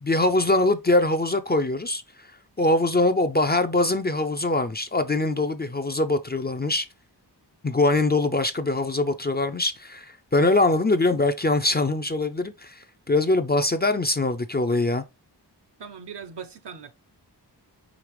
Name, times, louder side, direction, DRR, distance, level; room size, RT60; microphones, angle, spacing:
voice 1, 0.0-2.0 2.6-6.9 7.6-15.0, left 2 dB, 25° left, 0.4 m, -23 dB
voice 2, 15.8-16.9, right 6 dB, 70° right, 0.7 m, -39 dB
5.1 x 3.3 x 3.1 m
wide cardioid pair, 90°, 42 cm